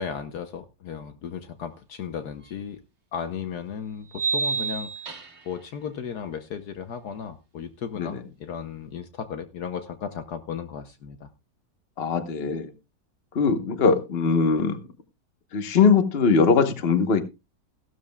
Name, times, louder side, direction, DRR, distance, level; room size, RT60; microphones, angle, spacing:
voice 1, 0.0-2.8 3.1-5.0 5.4-11.3, left 7 dB, 65° left, 9 dB, 1.3 m, -35 dB
sound 1, 2.5-2.6 4.1-5.6, right 4 dB, 40° right, 1.6 m, -28 dB
voice 2, 12.0-12.7 13.3-14.8 15.5-17.2, left 5 dB, 40° left, 9 dB, 1.2 m, -21 dB
16.0 x 12.5 x 2.3 m, 0.26 s
omnidirectional pair, 1.9 m